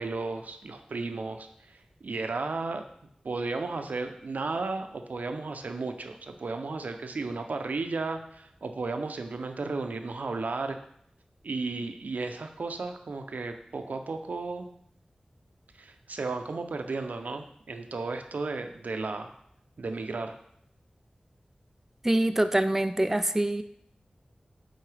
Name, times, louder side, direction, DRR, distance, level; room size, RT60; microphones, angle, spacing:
voice 1, 0.0-2.8 3.2-10.8 11.4-14.7 15.8-19.3 19.8-20.4, right 3 dB, 85° right, 6 dB, 0.5 m, -34 dB
voice 2, 22.0-23.6, right 1 dB, 15° right, 9 dB, 0.4 m, -25 dB
8.3 x 3.9 x 3.3 m, 0.69 s
wide cardioid pair, 60°, 3 cm